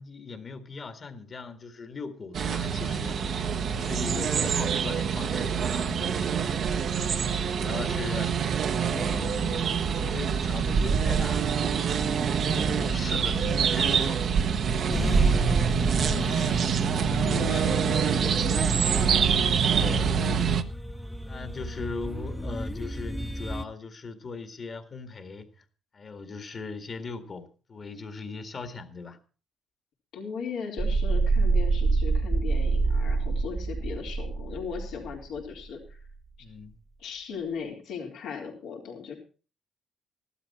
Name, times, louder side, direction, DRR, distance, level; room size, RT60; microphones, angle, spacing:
voice 1, 0.0-6.1 6.8-7.1 7.5-8.4 8.7-12.0 12.4-14.3 15.9-16.3 19.3-20.2 21.2-25.6 25.9-29.2 36.4-36.8, left 4 dB, 45° left, 2.0 m, -39 dB
sound 1, 2.3-20.6, right 7 dB, 60° right, 1.0 m, -25 dB
voice 2, 14.9-15.3 16.1-16.6 17.1-18.6 20.2-20.4 30.1-36.0 37.0-39.2, left 6 dB, 85° left, 4.0 m, -38 dB
sound 2, 14.9-23.6, equal, ahead, 0.8 m, -34 dB
sound 3, 30.8-35.4, right 4 dB, 25° right, 1.1 m, -25 dB
14.5 x 12.5 x 4.3 m
cardioid pair, 90°, 0 cm